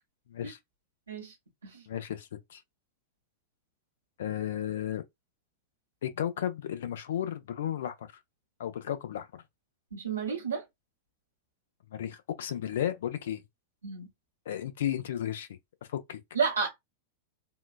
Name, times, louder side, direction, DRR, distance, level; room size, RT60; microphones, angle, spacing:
voice 1, 1.9-2.6 4.2-5.0 6.0-8.2 8.6-9.4 11.9-13.4 14.5-15.5 15.9-16.2, left 10 dB, 60° left, 0.5 m, -34 dB
voice 2, 9.9-10.6 13.8-14.1 16.3-16.7, right 6 dB, 75° right, 0.8 m, -31 dB
3.7 x 2.3 x 2.3 m
figure-of-eight pair, 90°, 0 cm